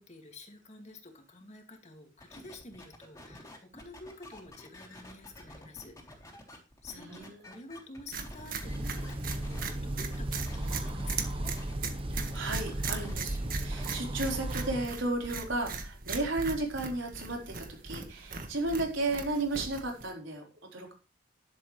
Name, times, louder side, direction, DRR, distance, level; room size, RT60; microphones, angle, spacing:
voice 1, 0.0-3.5 3.7-6.0 6.8-11.5, left 2 dB, 35° left, 4 dB, 2.4 m, -49 dB
sound 1, 2.2-9.7 10.1-11.7 12.1-14.4, left 1 dB, 15° left, 3.6 m, -50 dB
voice 2, 6.9-7.3 12.1-20.4 20.7-20.9, right 2 dB, 80° right, 1 dB, 4.3 m, -34 dB
sound 2, 8.1-20.1, right 4 dB, 45° right, 1.7 m, -39 dB
sound 3, 8.6-14.9, right 1 dB, 30° right, 1.0 m, -36 dB
12.0 x 11.5 x 3.3 m, 0.31 s
head